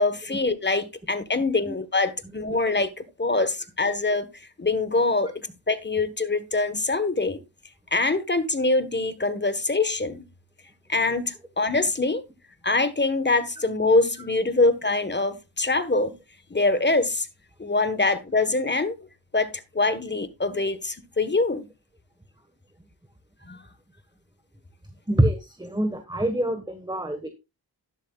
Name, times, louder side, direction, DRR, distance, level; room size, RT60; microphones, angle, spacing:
voice 1, 0.0-4.3 4.6-7.4 7.9-10.2 10.9-12.2 12.6-16.2 16.5-17.3 17.6-18.9 19.3-19.5 19.7-21.7 23.5-23.6, left 3 dB, 25° left, 1.4 m, -24 dB
voice 2, 25.1-27.3, right 1 dB, 10° right, 1.5 m, -25 dB
12.0 x 11.0 x 2.4 m
wide cardioid pair, 80°, 44 cm